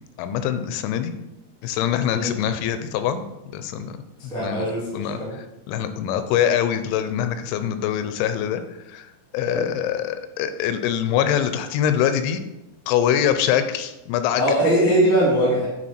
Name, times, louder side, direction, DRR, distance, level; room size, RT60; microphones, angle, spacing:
voice 1, 0.2-1.1 1.6-3.2 3.5-3.9 4.4-4.7 4.9-5.2 5.7-8.6 8.9-9.1 9.3-12.4 12.9-14.4, left 9 dB, 90° left, 10 dB, 3.0 m, -23 dB
voice 2, 4.3-5.4 9.4-9.7 14.4-15.7, right 1 dB, 5° left, -5 dB, 0.8 m, -21 dB
9.3 x 3.8 x 4.3 m, 0.94 s
omnidirectional pair, 5.2 m